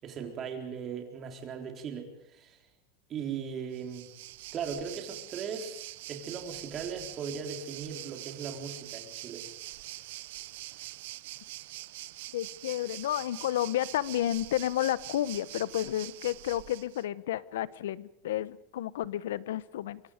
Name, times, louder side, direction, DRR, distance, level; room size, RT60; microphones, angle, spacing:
voice 1, 0.0-2.6 3.1-4.1 4.5-9.4, right 6 dB, 30° right, 3 dB, 4.1 m, -38 dB
Waves surf, 3.7-17.0, right 17 dB, 70° right, 0.8 m, -44 dB
voice 2, 12.3-20.0, left 13 dB, 90° left, 18 dB, 0.9 m, -31 dB
26.0 x 24.0 x 5.1 m, 0.83 s
supercardioid pair, 155°, 0 cm